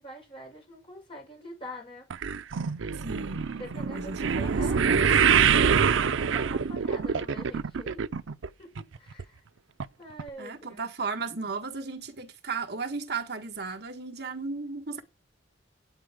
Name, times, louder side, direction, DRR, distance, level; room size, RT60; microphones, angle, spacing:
voice 1, 0.0-2.1 3.5-8.1 8.6-9.4 10.0-10.9, equal, 25° left, 7.0 m, -45 dB
sound 1, 2.1-8.5 8.8-9.2 9.8-9.9 10.2-10.3, right 6 dB, 80° right, 0.5 m, -25 dB
voice 2, 3.0-3.4 3.7-5.0 10.4-15.0, right 4 dB, 55° right, 1.3 m, -35 dB
9.3 x 8.9 x 4.9 m
head